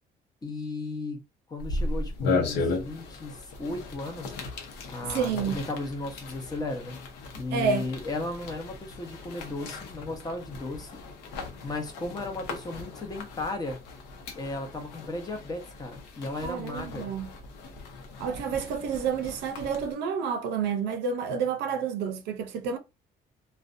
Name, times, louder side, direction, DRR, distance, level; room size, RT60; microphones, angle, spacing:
voice 1, 0.4-1.2 1.5-4.4 4.9-7.0 7.3-11.0 11.6-13.8 14.3-17.1, left 2 dB, 20° left, 0.8 m, -35 dB
sound 1, 1.6-19.9, left 3 dB, 90° left, 0.7 m, -36 dB
voice 2, 5.0-5.6 7.5-7.9 16.4-17.3 18.2-22.8, right 6 dB, 80° right, 0.5 m, -29 dB
2.5 x 2.2 x 2.5 m
cardioid pair, 110°, 17 cm